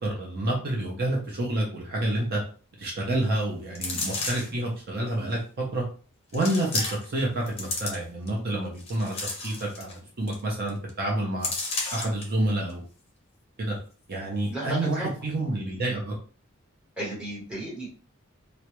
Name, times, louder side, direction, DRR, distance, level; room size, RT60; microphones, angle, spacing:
voice 1, 0.0-2.4 2.8-5.8 6.3-11.5 11.9-12.8 13.6-13.8 14.1-16.1, right 1 dB, 50° right, -3 dB, 0.6 m, -28 dB
sound 1, 3.7-4.6 5.4-5.5 6.3-7.2 7.5-8.3 8.8-10.0 10.3-10.4 10.7-10.9 11.4-12.2 12.7-12.8, left 3 dB, 30° left, 0.6 m, -32 dB
voice 2, 14.5-15.1 17.0-17.9, right 1 dB, 5° right, -6 dB, 1.1 m, -34 dB
2.2 x 2.0 x 2.9 m, 0.40 s
head